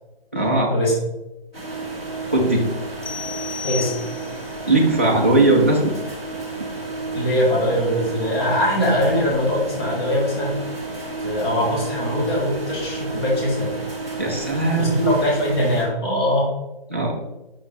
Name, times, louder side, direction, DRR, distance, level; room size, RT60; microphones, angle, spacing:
voice 1, 0.3-0.7 2.3-2.7 4.7-5.9 14.2-14.9 16.9-17.1, right 2 dB, 15° right, -1 dB, 0.4 m, -18 dB
sound 1, 1.5-15.8, right 3 dB, 5° left, 0.7 m, -31 dB
sound 2, 3.0-4.5, left 6 dB, 50° left, 0.4 m, -33 dB
voice 2, 7.1-10.6 11.2-13.7 14.8-16.5, equal, 25° left, -4 dB, 1.5 m, -21 dB
6.2 x 6.0 x 3.3 m, 1.0 s
hypercardioid pair, 175°, 29 cm